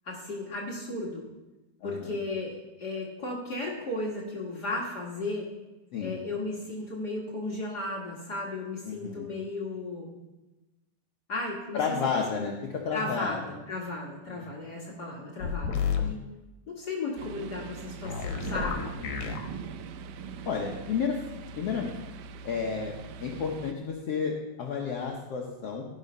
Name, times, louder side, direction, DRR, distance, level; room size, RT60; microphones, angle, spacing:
voice 1, 0.0-1.3 1.8-5.5 6.0-10.1 11.3-11.8 12.1-12.5 12.9-16.2 16.7-18.9, left 2 dB, 45° left, -3 dB, 1.4 m, -35 dB
voice 2, 1.8-2.2 5.9-6.1 8.8-9.3 11.7-13.4 19.0-19.4 20.5-21.9 22.4-22.9 23.2-25.8, left 6 dB, 80° left, 0 dB, 1.3 m, -32 dB
sound 1, 15.4-16.1 18.0-19.4, left 7 dB, 65° left, 2.2 m, -30 dB
sound 2, 17.2-23.7, right 6 dB, 80° right, 2.0 m, -41 dB
15.0 x 5.5 x 5.5 m, 1.1 s
omnidirectional pair, 4.3 m